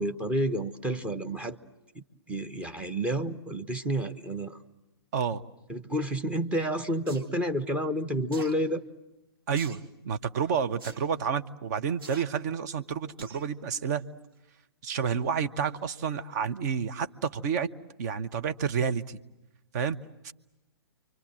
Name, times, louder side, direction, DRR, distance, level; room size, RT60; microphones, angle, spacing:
voice 1, 0.0-1.6 1.9-4.6 5.7-8.8, equal, 10° right, 7 dB, 1.0 m, -30 dB
sound 1, 7.1-7.3 8.3-8.6 9.6-9.9 10.8-11.0 12.0-12.2 13.2-13.5 13.9-14.0, right 2 dB, 60° right, 2.5 m, -44 dB
voice 2, 9.5-9.8 10.0-14.0 14.8-17.7 18.0-19.2 19.7-20.0 20.2-20.3, right 7 dB, 45° right, 10 dB, 1.1 m, -29 dB
30.0 x 24.5 x 7.7 m, 0.95 s
figure-of-eight pair, 120°, 13 cm